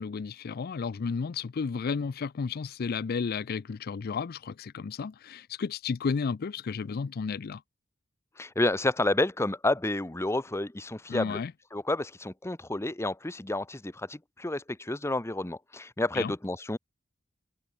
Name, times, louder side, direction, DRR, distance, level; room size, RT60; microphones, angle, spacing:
voice 1, 0.0-7.6 11.1-11.5 16.1-16.3, left 5 dB, 50° left, 0.4 m, -32 dB
voice 2, 8.4-11.4 11.7-16.8, left 2 dB, 15° left, 0.8 m, -30 dB
head